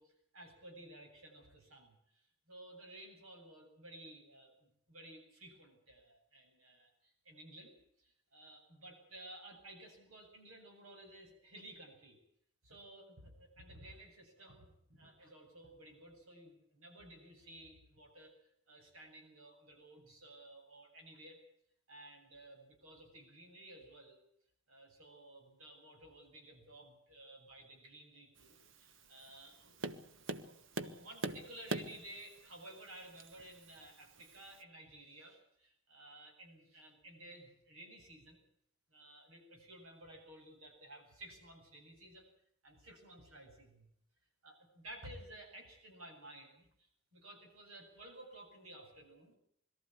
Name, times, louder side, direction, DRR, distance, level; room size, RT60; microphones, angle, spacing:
voice 1, 0.0-12.2 12.6-18.3 18.7-21.4 21.9-24.2 24.7-30.0 30.4-38.4 38.9-42.3 42.6-43.9 44.4-49.3, right 1 dB, 90° right, 3 dB, 7.9 m, -55 dB
Tap, 28.4-34.6, right 2 dB, 65° right, 1.4 m, -45 dB
22.0 x 14.0 x 9.8 m, 0.70 s
head